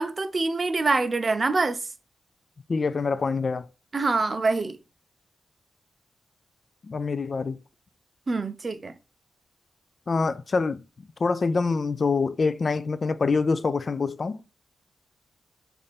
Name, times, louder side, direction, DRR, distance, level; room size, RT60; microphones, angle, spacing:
voice 1, 0.0-1.8 3.9-4.8 8.3-8.9, right 3 dB, 40° right, 0.4 m, -25 dB
voice 2, 2.7-3.7 6.8-7.6 10.1-10.8 11.2-14.4, left 4 dB, 50° left, 0.3 m, -25 dB
3.4 x 2.5 x 4.1 m
cardioid pair, 80°, 0 cm